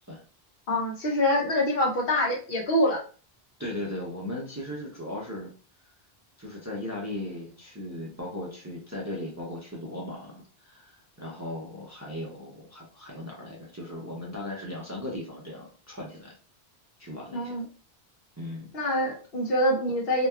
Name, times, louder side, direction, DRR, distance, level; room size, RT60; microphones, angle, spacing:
voice 1, 0.7-3.0 17.3-17.6 18.7-20.3, left 1 dB, 70° left, 0 dB, 0.9 m, -25 dB
voice 2, 3.6-5.5 6.4-16.3 17.0-17.6 18.4-18.7, left 1 dB, 25° right, -3 dB, 0.5 m, -37 dB
2.8 x 2.2 x 2.2 m, 0.39 s
omnidirectional pair, 1.0 m